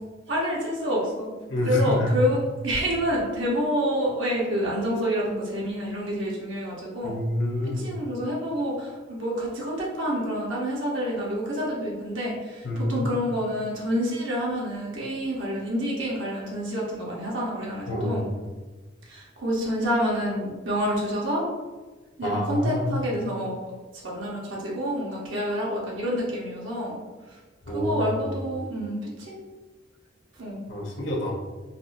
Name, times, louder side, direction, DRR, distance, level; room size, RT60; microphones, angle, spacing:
voice 1, 0.3-1.3 1.6-7.1 7.6-18.3 19.1-21.5 22.2-23.6 24.0-27.0 27.7-29.4 30.4-30.6, equal, 85° right, -5 dB, 1.0 m, -28 dB
voice 2, 1.5-2.1 7.0-7.9 12.6-13.1 17.9-18.2 22.2-23.0 27.7-28.3 30.7-31.3, left 1 dB, 70° left, -1 dB, 0.8 m, -27 dB
4.1 x 2.3 x 2.6 m, 1.3 s
head